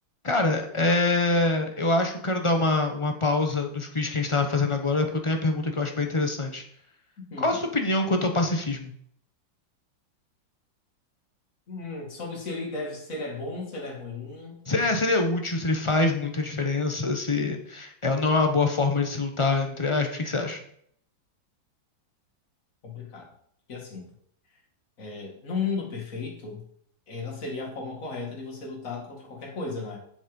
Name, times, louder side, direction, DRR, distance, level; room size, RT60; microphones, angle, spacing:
voice 1, 0.2-6.6 7.4-8.9 14.7-20.6, left 2 dB, 25° left, 4 dB, 0.6 m, -25 dB
voice 2, 11.7-14.6 22.8-23.3 23.7-24.1 25.0-26.6 27.1-30.0, left 4 dB, 45° left, -1 dB, 2.5 m, -35 dB
7.4 x 7.3 x 5.3 m, 0.66 s
omnidirectional pair, 2.1 m